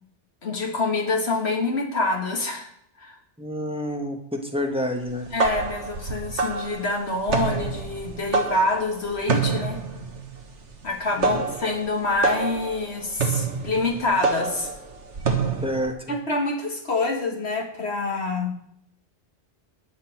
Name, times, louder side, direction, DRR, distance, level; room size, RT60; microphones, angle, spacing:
voice 1, 0.4-2.7 3.0-3.2 5.3-9.8 10.8-14.7 16.1-18.5, left 2 dB, 65° left, 2 dB, 2.4 m, -26 dB
voice 2, 3.4-5.3 11.2-11.3 15.6-16.2, equal, 5° right, 3 dB, 1.6 m, -28 dB
sound 1, 5.1-15.9, right 4 dB, 75° right, 1.7 m, -27 dB
11.5 x 5.9 x 8.8 m, 0.70 s
omnidirectional pair, 1.2 m